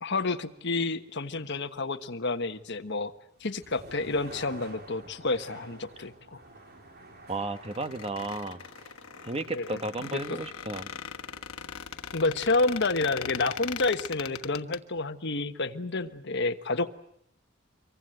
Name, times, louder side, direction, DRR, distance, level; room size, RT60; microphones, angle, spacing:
voice 1, 0.0-3.1 3.4-6.4 9.5-10.4 12.1-16.9, left 3 dB, 55° left, 8 dB, 1.3 m, -29 dB
sound 1, 3.3-15.2, right 2 dB, 45° right, 3.4 m, -52 dB
voice 2, 7.3-8.6 9.2-10.9, right 2 dB, 25° right, 10 dB, 1.2 m, -33 dB
Squeak, 7.6-14.8, left 8 dB, 85° left, 1.3 m, -40 dB
25.5 x 23.5 x 7.9 m, 0.72 s
head